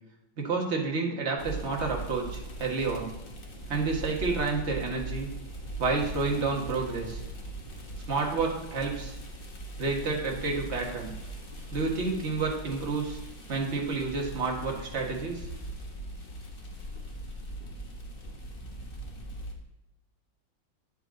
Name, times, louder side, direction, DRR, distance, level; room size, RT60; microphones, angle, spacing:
voice 1, 0.4-3.1 3.7-5.3 5.8-7.2 8.1-9.2 9.8-11.1 11.7-13.2 13.5-15.5, right 4 dB, 35° right, 0 dB, 1.6 m, -30 dB
sound 1, 1.4-19.5, right 2 dB, 35° left, 1.0 m, -40 dB
9.3 x 7.8 x 3.8 m, 0.94 s
omnidirectional pair, 2.3 m